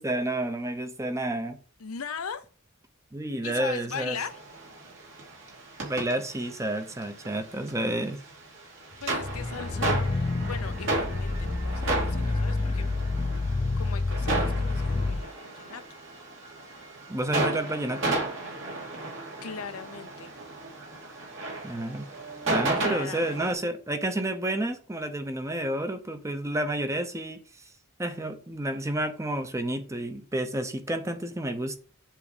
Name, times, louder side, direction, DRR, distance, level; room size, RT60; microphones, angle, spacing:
voice 1, 0.0-1.6 3.1-4.2 5.8-8.2 17.1-18.2 21.6-22.1 22.5-27.4 28.0-31.8, right 1 dB, 15° right, 0.8 m, -30 dB
voice 2, 1.8-2.4 3.4-4.4 9.0-10.1 10.4-12.9 13.8-15.8 19.4-20.3 22.8-23.6, left 6 dB, 85° left, 0.7 m, -39 dB
sound 1, 4.1-23.5, right 2 dB, 60° right, 2.7 m, -34 dB
sound 2, 9.1-15.2, left 3 dB, 25° left, 0.5 m, -28 dB
7.5 x 4.0 x 5.1 m
head